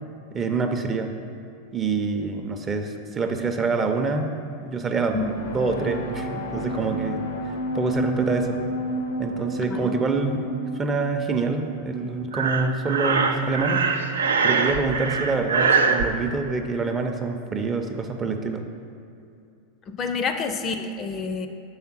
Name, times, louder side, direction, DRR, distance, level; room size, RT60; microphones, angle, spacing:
voice 1, 0.3-1.1 1.7-4.3 4.6-8.6 9.2-10.5 10.7-13.8 14.4-18.6, right 4 dB, 25° right, 5 dB, 0.6 m, -26 dB
sound 1, 5.1-12.7, right 1 dB, 85° left, 0.6 m, -31 dB
Breathing, 12.3-16.1, right 5 dB, 80° right, 0.4 m, -22 dB
voice 2, 19.9-21.5, left 4 dB, 35° left, 7 dB, 0.4 m, -28 dB
6.4 x 3.4 x 6.1 m, 2.6 s
hypercardioid pair, 95°, 0 cm